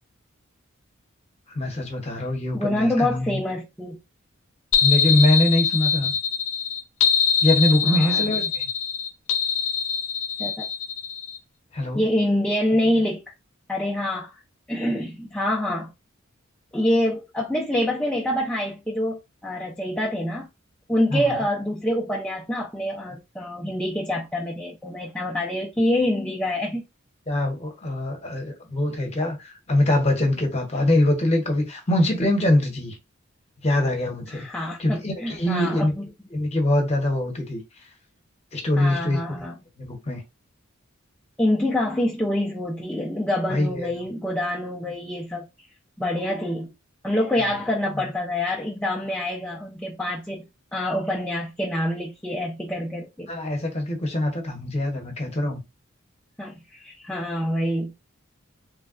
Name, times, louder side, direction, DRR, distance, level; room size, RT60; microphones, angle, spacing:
voice 1, 1.5-3.4 4.8-6.1 7.4-8.7 11.7-12.1 21.1-21.3 27.3-33.0 33.6-34.4 34.8-35.9 36.3-37.6 38.5-39.2 39.8-40.2 43.5-44.1 47.4-47.6 47.9-48.1 53.3-55.6, left 1 dB, 30° left, 0.9 m, -23 dB
voice 2, 2.5-4.0 7.8-8.2 10.4-10.7 11.9-13.2 13.7-14.3 14.7-15.9 16.7-20.5 20.9-26.8 34.3-36.0 38.8-39.5 41.4-45.5 46.0-46.7 47.0-53.3 56.4-57.9, left 1 dB, 5° left, 0.4 m, -26 dB
sound 1, 4.7-11.4, left 7 dB, 70° left, 0.5 m, -23 dB
3.1 x 2.2 x 2.4 m
head